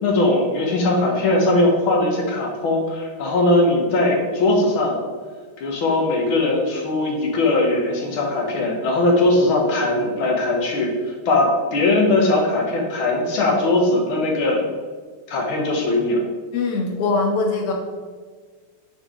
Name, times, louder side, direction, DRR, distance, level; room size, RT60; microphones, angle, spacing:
voice 1, 0.0-5.0 5.6-10.9 11.2-14.6 15.3-16.2, left 2 dB, 75° left, 0 dB, 1.8 m, -20 dB
voice 2, 16.5-17.7, left 3 dB, 55° left, 0 dB, 1.3 m, -22 dB
8.7 x 3.5 x 3.6 m, 1.5 s
omnidirectional pair, 2.3 m